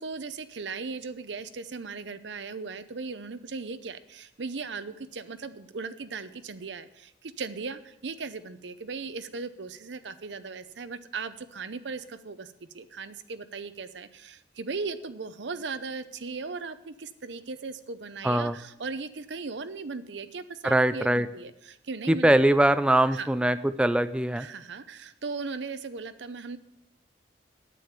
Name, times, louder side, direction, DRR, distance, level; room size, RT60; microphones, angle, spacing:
voice 1, 0.0-22.3 23.1-23.3 24.4-26.6, right 4 dB, 75° right, 12 dB, 0.7 m, -37 dB
voice 2, 18.2-18.5 20.6-21.3 22.1-24.5, right 1 dB, 5° right, 13 dB, 0.3 m, -22 dB
9.2 x 8.6 x 7.1 m, 0.83 s
head